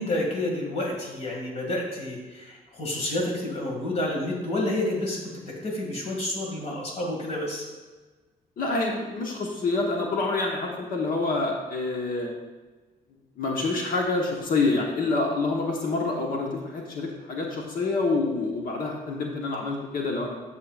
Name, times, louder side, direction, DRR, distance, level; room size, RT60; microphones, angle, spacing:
voice 1, 0.0-5.2 5.5-7.7, left 1 dB, 40° left, -1 dB, 2.2 m, -29 dB
voice 2, 8.6-12.3 13.4-20.4, left 3 dB, 60° left, 0 dB, 1.2 m, -27 dB
10.0 x 6.9 x 2.4 m, 1.3 s
cardioid pair, 140°, 16 cm